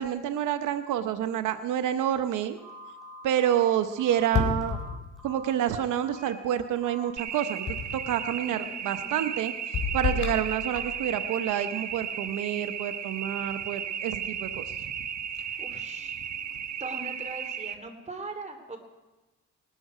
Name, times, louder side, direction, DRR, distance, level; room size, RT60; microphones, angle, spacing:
voice 1, 0.0-2.6 3.2-4.8 5.2-7.7 7.9-9.5 9.9-14.6, right 10 dB, 85° right, 9 dB, 0.8 m, -28 dB
Telephone, 2.6-5.5 6.0-6.4 6.8-7.1, equal, ahead, 6.9 m, -46 dB
sound 1, 4.3-5.4 7.7-8.2 9.7-11.0, left 6 dB, 65° left, 3.4 m, -30 dB
sound 2, 7.2-17.8, right 8 dB, 65° right, 1.3 m, -35 dB
voice 2, 8.4-9.3 10.1-10.4 15.6-16.3 16.8-18.8, right 3 dB, 25° right, 5 dB, 2.9 m, -41 dB
20.0 x 13.0 x 5.0 m, 1.1 s
cardioid pair, 90°, 30 cm